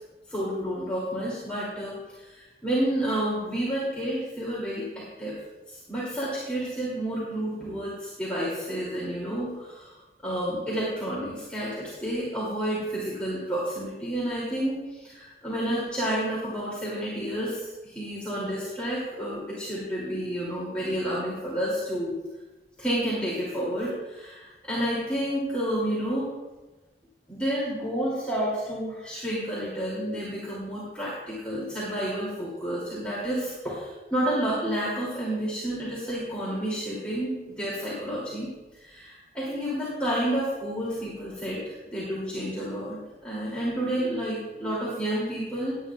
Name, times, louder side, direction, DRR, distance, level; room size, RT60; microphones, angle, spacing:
voice 1, 0.3-5.3 5.7-9.9 10.2-22.1 22.8-26.3 27.3-43.0 43.2-45.8, right 1 dB, 5° left, -8 dB, 2.8 m, -30 dB
19.5 x 9.3 x 2.4 m, 1.1 s
head